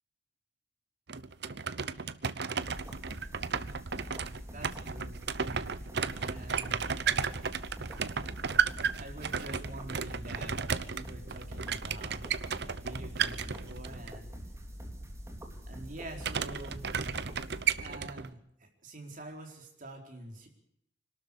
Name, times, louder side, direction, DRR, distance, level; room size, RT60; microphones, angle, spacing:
sound 1, 1.1-14.1 16.2-18.3, right 6 dB, 60° right, 0.9 m, -34 dB
sound 2, 2.6-18.1, equal, 15° right, 3.2 m, -44 dB
voice 1, 4.5-5.1 6.2-6.8 9.0-12.3 12.8-14.3 15.7-16.9 17.8-20.5, right 1 dB, 45° right, 3 dB, 4.5 m, -46 dB
25.5 x 12.5 x 8.5 m, 0.73 s
head